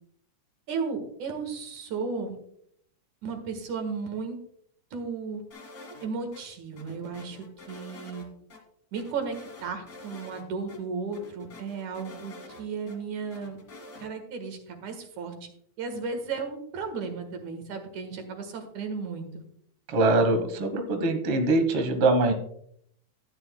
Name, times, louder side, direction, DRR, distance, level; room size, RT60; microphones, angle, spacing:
voice 1, 0.7-2.4 3.2-4.4 4.9-5.4 6.0-8.3 8.9-13.6 14.0-15.3 15.8-19.3, right 5 dB, 85° right, 5 dB, 3.0 m, -34 dB
sound 1, 5.5-6.4 6.8-8.3 8.5-8.6 8.9-10.4 10.7-10.8 11.1-13.0 13.3-14.1, left 2 dB, 35° left, 2.2 m, -47 dB
voice 2, 19.9-22.3, right 2 dB, 55° right, 6 dB, 2.0 m, -23 dB
13.0 x 10.5 x 2.2 m, 0.69 s
omnidirectional pair, 3.3 m